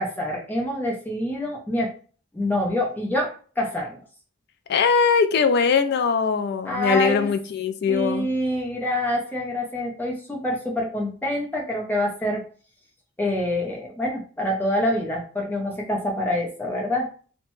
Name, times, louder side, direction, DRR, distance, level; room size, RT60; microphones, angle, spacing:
voice 1, 0.0-1.9 2.3-4.0 6.7-7.3 7.9-12.4 13.2-17.1, left 1 dB, 10° left, -2 dB, 0.6 m, -26 dB
voice 2, 4.7-8.3, left 6 dB, 50° left, 9 dB, 0.3 m, -21 dB
2.8 x 2.2 x 3.0 m, 0.41 s
head